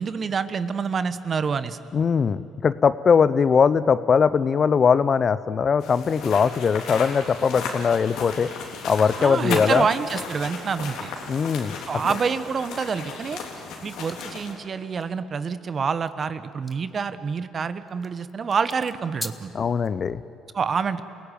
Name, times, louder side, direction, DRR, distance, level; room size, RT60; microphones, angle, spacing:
voice 1, 0.0-1.8 9.2-11.1 11.9-13.4 13.8-19.5 20.5-21.0, right 5 dB, 45° right, 13 dB, 1.2 m, -27 dB
voice 2, 1.9-8.5 8.8-9.9 11.3-11.8 19.5-20.2, left 6 dB, 45° left, 16 dB, 0.8 m, -20 dB
sound 1, 5.8-14.5, left 4 dB, 65° left, 3.5 m, -35 dB
sound 2, 14.1-14.3 15.0-15.1 16.1-19.9, left 1 dB, 5° left, 1.5 m, -41 dB
29.0 x 17.0 x 9.2 m, 2.5 s
hypercardioid pair, 55°, 0 cm